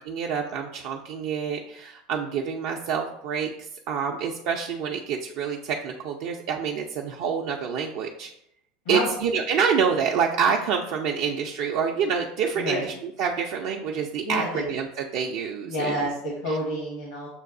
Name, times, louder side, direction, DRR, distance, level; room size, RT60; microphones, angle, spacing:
voice 1, 0.1-3.5 3.9-8.3 8.9-16.1 16.5-16.6, right 6 dB, 60° right, 1 dB, 0.4 m, -27 dB
voice 2, 14.2-14.6 15.7-17.3, left 1 dB, 80° left, -4 dB, 1.2 m, -29 dB
6.6 x 2.3 x 2.5 m, 0.76 s
hypercardioid pair, 90°, 0 cm